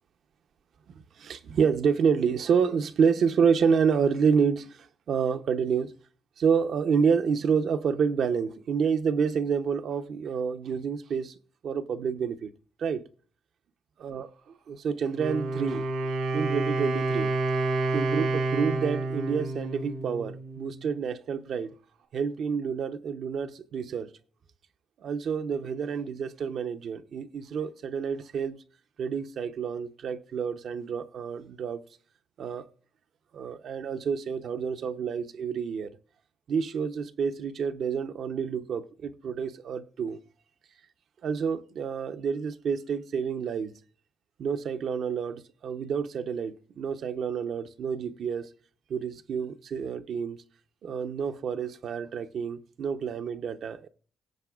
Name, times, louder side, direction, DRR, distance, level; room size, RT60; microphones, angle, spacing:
voice 1, 0.9-5.9 6.4-11.4 11.6-12.5 12.8-13.0 14.0-14.3 14.7-15.9 16.3-17.3 17.9-21.7 22.1-24.1 25.0-28.6 29.0-31.8 32.4-32.7 33.3-35.9 36.5-40.2 41.2-43.7 44.4-48.5 48.9-50.4 50.8-53.9, right 6 dB, 65° right, 0.7 m, -28 dB
Wind instrument woodwind instrument, 15.1-20.8, right 3 dB, 85° right, 2.7 m, -29 dB
18.0 x 7.6 x 2.4 m
cardioid pair, 90°, 0 cm